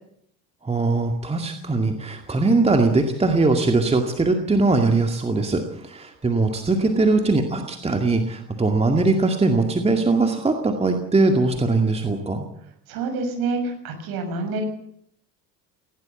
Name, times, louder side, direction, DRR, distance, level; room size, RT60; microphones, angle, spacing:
voice 1, 0.6-12.4, right 3 dB, 10° right, 5 dB, 2.1 m, -21 dB
voice 2, 12.9-14.6, right 3 dB, 45° right, 6 dB, 6.5 m, -27 dB
19.0 x 17.0 x 8.3 m, 0.70 s
figure-of-eight pair, 70°, 50 cm